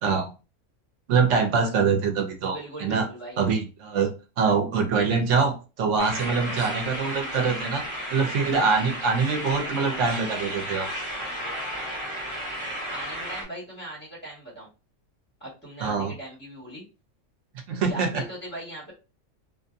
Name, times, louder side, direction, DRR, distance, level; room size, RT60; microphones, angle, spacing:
voice 1, 0.0-0.3 1.1-3.1 3.4-7.8 8.1-10.9 15.8-16.1 17.7-18.2, right 5 dB, 75° right, 5 dB, 1.0 m, -24 dB
voice 2, 2.5-3.4 12.9-14.7 15.4-16.8 17.9-18.9, right 1 dB, 10° left, -5 dB, 1.6 m, -39 dB
sound 1, 6.0-13.4, equal, 25° right, 0.9 m, -33 dB
2.6 x 2.5 x 2.5 m, 0.31 s
omnidirectional pair, 1.3 m